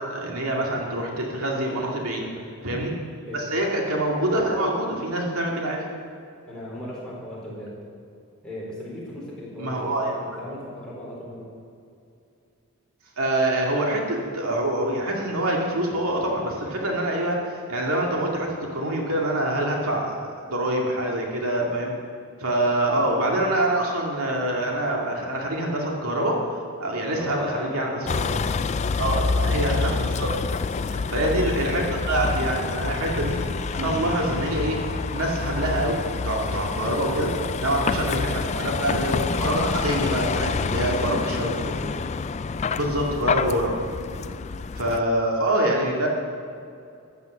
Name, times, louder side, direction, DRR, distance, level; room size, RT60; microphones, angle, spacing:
voice 1, 0.0-2.3 2.6-2.9 3.3-5.8 9.6-10.1 13.2-21.9 22.4-26.4 26.8-28.4 28.9-30.3 30.8-33.4 33.7-34.8 35.1-36.0 36.2-37.3 37.6-41.5 42.7-43.8 44.8-46.1, right 1 dB, 75° right, -1 dB, 2.3 m, -25 dB
voice 2, 6.5-7.7 8.4-11.4 27.1-28.4 30.8-31.1 37.7-37.9 40.8-41.2 44.1-44.3, left 1 dB, 5° left, -7 dB, 4.2 m, -37 dB
Vehicle, 28.1-45.0, left 4 dB, 30° left, 0.3 m, -27 dB
14.5 x 9.4 x 7.1 m, 2.5 s
head